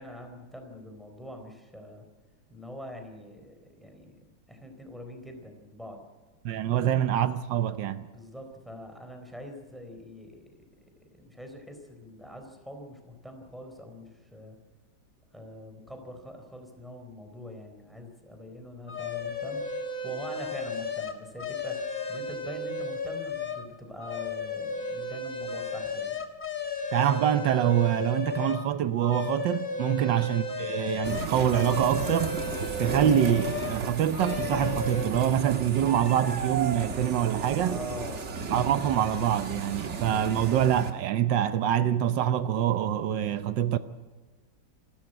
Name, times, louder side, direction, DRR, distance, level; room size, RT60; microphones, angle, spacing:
voice 1, 0.0-2.0 2.5-4.2 4.5-6.0 6.7-7.0 8.1-10.4 11.0-14.6 15.3-19.6 20.0-26.2 30.0-30.2 37.6-38.2, left 1 dB, ahead, 4.0 m, -43 dB
voice 2, 6.4-8.1 26.9-32.4 32.8-37.8 38.5-43.8, right 10 dB, 80° right, 1.5 m, -25 dB
sound 1, 18.9-23.7 24.0-28.7 29.0-33.8 34.1-35.1, left 4 dB, 25° left, 1.7 m, -34 dB
sound 2, 31.0-40.9, right 4 dB, 40° right, 1.7 m, -34 dB
27.0 x 13.0 x 7.8 m
omnidirectional pair, 1.9 m